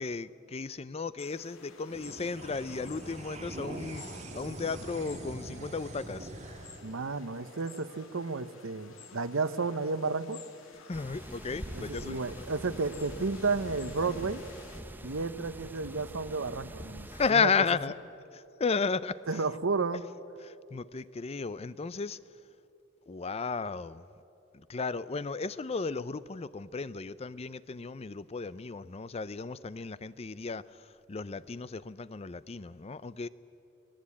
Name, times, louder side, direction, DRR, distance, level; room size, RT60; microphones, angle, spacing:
voice 1, 0.0-6.3 10.9-12.4 17.1-18.0 18.3-19.4 20.4-22.2 23.1-24.1 24.5-33.3, left 4 dB, 30° left, 17 dB, 0.5 m, -34 dB
sound 1, 1.2-14.8, left 4 dB, 80° left, 2.3 m, -53 dB
sound 2, 1.9-8.6, right 1 dB, 35° right, 1.9 m, -44 dB
voice 2, 6.8-10.4 11.7-14.4 15.0-17.5 19.3-20.0, right 4 dB, 80° right, 13 dB, 0.9 m, -32 dB
sound 3, 10.9-17.3, right 1 dB, 10° right, 0.8 m, -44 dB
25.0 x 17.5 x 8.5 m, 2.7 s
head